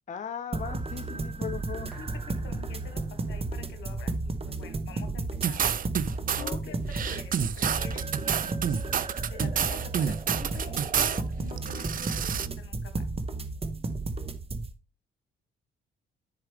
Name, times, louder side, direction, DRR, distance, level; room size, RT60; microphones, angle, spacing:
voice 1, 0.1-1.9 6.4-6.8, left 7 dB, 40° left, 0.8 m, -38 dB
sound 1, 0.5-14.7, right 3 dB, 30° right, 1.2 m, -33 dB
voice 2, 1.9-3.0 3.3-5.6 6.3-8.0 8.3-12.3 12.6-13.0, left 7 dB, 80° left, 1.7 m, -47 dB
sound 2, 1.9-7.6 7.9-8.0, right 1 dB, ahead, 1.9 m, -46 dB
sound 3, 5.4-6.5 6.9-11.2 11.6-12.5, right 8 dB, 45° right, 0.5 m, -29 dB
10.5 x 4.8 x 3.5 m
cardioid pair, 90°, 20 cm